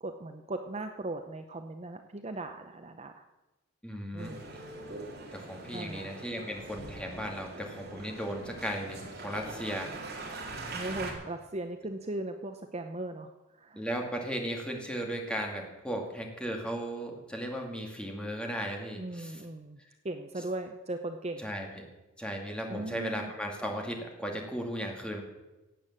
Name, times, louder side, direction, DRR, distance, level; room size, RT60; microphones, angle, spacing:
voice 1, 0.0-3.2 4.1-4.4 5.7-6.1 10.7-13.9 19.0-19.8 20.0-21.5 22.7-23.3, right 2 dB, 30° right, 6 dB, 0.7 m, -38 dB
voice 2, 3.8-4.3 5.3-9.9 13.8-19.4 21.4-21.8 22.2-25.2, equal, 5° left, 1 dB, 2.2 m, -36 dB
Male speech man speaking, 4.2-11.1, right 2 dB, 50° right, 3.1 m, -42 dB
16.0 x 8.6 x 7.5 m, 1.1 s
head